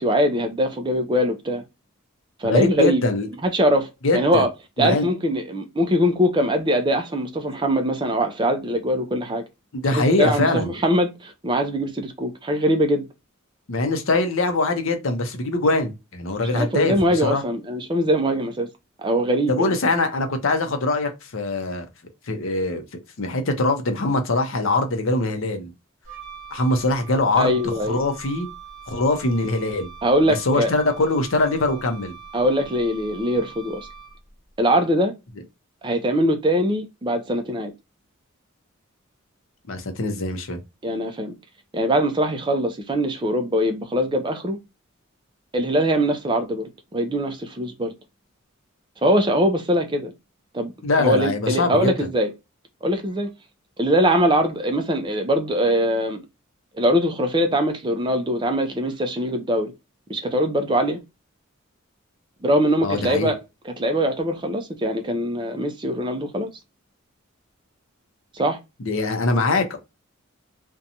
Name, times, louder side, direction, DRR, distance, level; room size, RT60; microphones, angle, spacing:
voice 1, 0.0-1.6 2.4-3.0 3.4-4.5 4.8-9.4 9.9-13.1 16.5-18.7 19.0-19.7 27.4-28.0 30.0-30.7 32.3-33.9 34.6-35.1 35.8-37.7 40.8-41.3 41.7-44.6 45.5-47.9 49.0-50.1 50.5-50.7 51.0-52.3 52.8-53.3 53.8-56.2 56.8-59.7 60.1-61.0 62.4-63.4 63.7-66.5 68.3-68.6, equal, 20° right, 0.4 m, -22 dB
voice 2, 2.4-3.3 4.0-4.5 4.8-5.1 9.7-10.7 13.7-17.4 19.5-21.9 22.3-22.8 23.2-25.7 26.5-27.5 27.9-28.5 28.9-29.9 30.3-32.2 39.7-40.6 50.8-51.9 62.8-63.3 68.8-69.8, left 2 dB, 65° left, 0.6 m, -22 dB
Wind instrument woodwind instrument, 26.0-34.4, right 6 dB, 65° right, 0.9 m, -42 dB
2.6 x 2.2 x 2.7 m
head